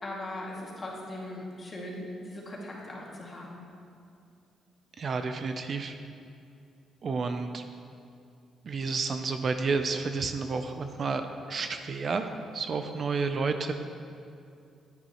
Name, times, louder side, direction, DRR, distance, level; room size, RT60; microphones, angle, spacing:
voice 1, 0.0-3.6, left 1 dB, 30° left, -3 dB, 2.2 m, -39 dB
voice 2, 5.0-6.0 7.0-7.6 8.6-12.3 12.5-13.7, right 4 dB, 45° right, 7 dB, 0.5 m, -30 dB
9.6 x 9.4 x 3.1 m, 2.5 s
cardioid pair, 90°, 0 cm